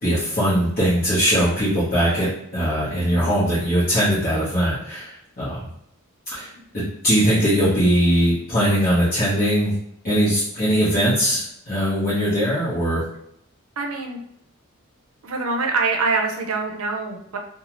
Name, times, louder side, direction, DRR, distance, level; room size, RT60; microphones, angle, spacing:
voice 1, 0.0-5.7 6.3-6.5 6.7-9.7 10.0-13.0, equal, 40° left, -11 dB, 0.9 m, -20 dB
voice 2, 3.0-3.3 13.8-14.2 15.2-17.4, right 3 dB, 75° right, 3 dB, 0.5 m, -25 dB
2.6 x 2.3 x 3.0 m, 0.75 s
head